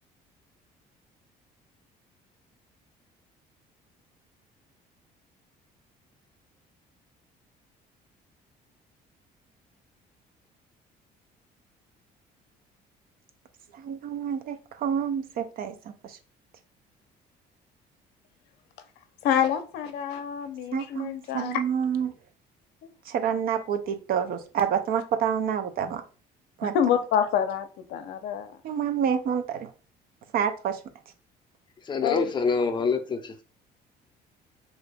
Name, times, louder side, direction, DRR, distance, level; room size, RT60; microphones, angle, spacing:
voice 1, 13.7-16.2 20.7-22.1 23.1-26.0 26.6-26.7 28.6-29.7 30.3-30.8, right 8 dB, 60° right, 0.5 m, -28 dB
voice 2, 19.2-21.6 22.8-22.9 26.6-28.5 32.0-32.3, left 9 dB, 85° left, 0.5 m, -27 dB
voice 3, 31.8-33.4, left 4 dB, 25° left, 0.5 m, -26 dB
2.8 x 2.5 x 3.3 m
cardioid pair, 110°, 17 cm